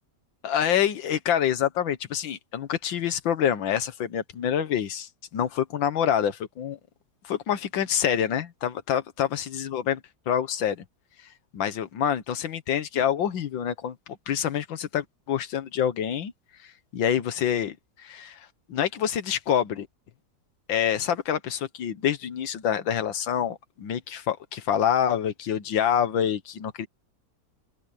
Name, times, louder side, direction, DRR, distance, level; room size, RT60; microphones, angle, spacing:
voice 1, 0.4-6.8 7.2-10.0 10.3-10.8 11.5-14.0 14.3-16.3 16.6-19.9 20.7-26.9, left 9 dB, 85° left, 1.9 m, -26 dB
omnidirectional pair, 2.0 m